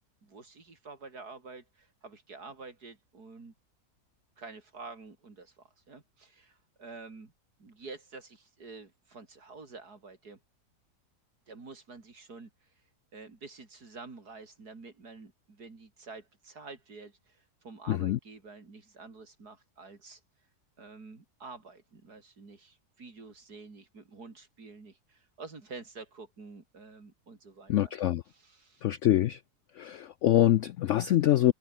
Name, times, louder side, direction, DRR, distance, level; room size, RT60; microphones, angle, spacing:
voice 1, 0.2-3.5 4.4-7.3 7.6-10.4 11.5-12.7 13.1-20.2 20.8-27.9 28.3-28.8, right 3 dB, 70° right, 4.1 m, -48 dB
voice 2, 17.9-18.2 27.7-28.2 28.8-29.4 29.8-31.5, left 13 dB, 75° left, 0.7 m, -25 dB
omnidirectional pair, 1.8 m